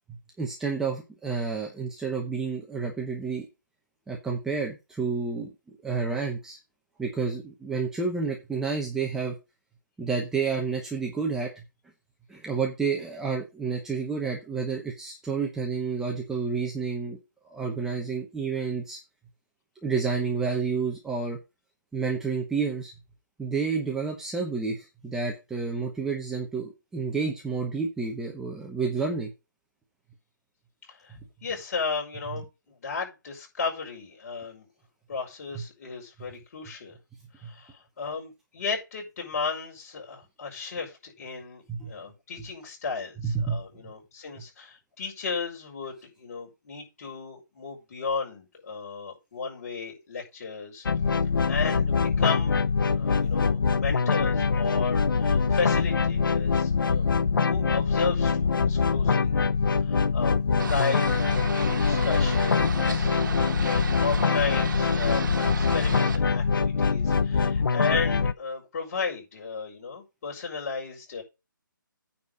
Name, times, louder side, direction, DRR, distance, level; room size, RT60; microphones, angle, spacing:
voice 1, 0.4-3.5 4.1-5.5 5.8-6.6 7.0-9.3 10.0-11.5 12.3-17.2 17.4-19.0 19.8-21.4 21.9-22.9 23.4-29.3 37.4-37.5 41.7-41.9 43.2-43.6, right 5 dB, 5° right, -1 dB, 1.0 m, -30 dB
voice 2, 31.4-34.7 35.1-37.0 37.4-50.9 51.5-52.6 52.9-57.0 57.4-59.3 59.8-63.1 63.7-71.2, left 5 dB, 45° left, -1 dB, 5.2 m, -34 dB
sound 1, 50.9-68.3, left 5 dB, 75° left, 0.6 m, -24 dB
sound 2, 60.6-66.2, right 4 dB, 65° right, 1.7 m, -35 dB
9.3 x 4.2 x 6.3 m, 0.26 s
hypercardioid pair, 160°, 11 cm